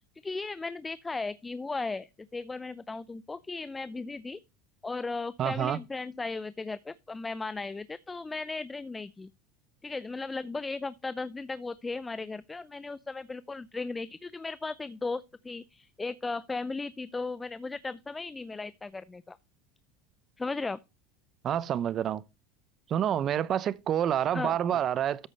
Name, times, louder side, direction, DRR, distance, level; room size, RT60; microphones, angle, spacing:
voice 1, 0.2-4.4 4.8-9.3 9.8-19.4 20.4-20.8 24.3-24.8, left 3 dB, 15° left, 0.4 m, -36 dB
voice 2, 5.4-5.8 21.4-22.2 22.9-25.3, right 10 dB, 40° right, 0.6 m, -28 dB
13.5 x 5.3 x 3.3 m
supercardioid pair, 100°, 0 cm